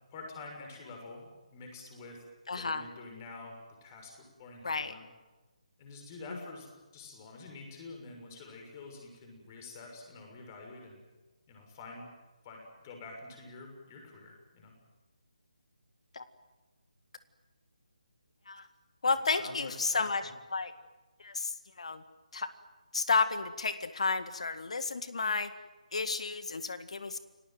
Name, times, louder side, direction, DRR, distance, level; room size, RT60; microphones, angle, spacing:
voice 1, 0.1-2.2 2.5-3.6 3.8-5.0 5.8-6.7 6.9-11.0 11.5-12.1 12.4-14.7 19.4-20.3, left 3 dB, 25° left, 2 dB, 6.7 m, -47 dB
voice 2, 2.5-2.9 4.6-4.9 6.3-6.4 16.1-16.2 18.5-18.7 19.0-20.7 21.2-22.0 22.3-22.5 22.9-25.5 25.9-27.2, left 4 dB, 55° left, 11 dB, 1.9 m, -32 dB
29.5 x 19.0 x 9.4 m, 1.2 s
figure-of-eight pair, 150°, 4 cm